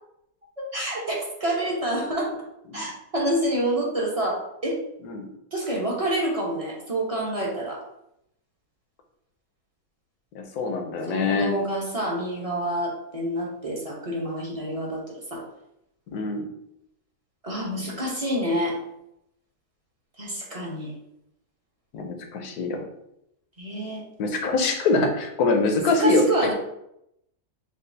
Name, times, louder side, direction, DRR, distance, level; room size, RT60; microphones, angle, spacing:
voice 1, 0.7-2.5 2.7-4.8 5.5-7.8 11.1-15.4 17.4-18.8 20.2-20.9 23.6-24.0 25.8-26.5, right 1 dB, 30° right, -3 dB, 0.7 m, -28 dB
voice 2, 10.3-11.5 16.1-16.5 21.9-22.8 24.2-26.2, left 3 dB, 80° left, 4 dB, 1.2 m, -24 dB
6.2 x 2.4 x 2.7 m, 0.80 s
omnidirectional pair, 1.6 m